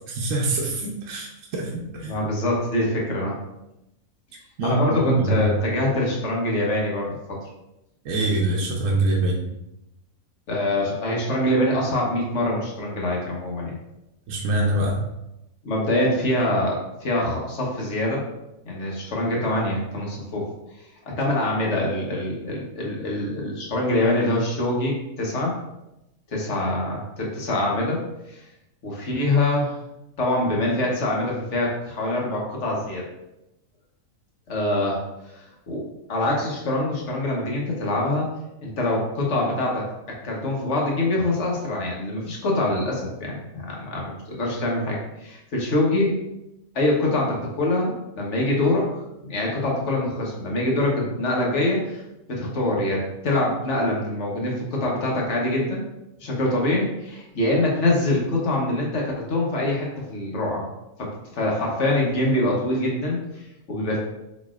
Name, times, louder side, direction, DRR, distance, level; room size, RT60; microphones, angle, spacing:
voice 1, 0.1-2.2 4.6-5.5 8.0-9.4 14.3-14.9, right 2 dB, 70° right, -1 dB, 1.1 m, -24 dB
voice 2, 2.0-3.4 4.6-7.4 10.5-13.8 15.6-18.2 18.7-20.5 21.1-25.5 26.3-28.0 28.3-28.4 28.8-29.7 30.2-33.0 34.5-35.0 35.3-35.8 36.1-38.3 38.6-39.8 40.2-46.2 46.7-52.0 52.3-55.8 56.2-60.7 61.0-61.1 61.3-64.0, left 1 dB, 60° left, -2 dB, 1.4 m, -24 dB
5.0 x 4.1 x 2.4 m, 0.90 s
omnidirectional pair, 1.4 m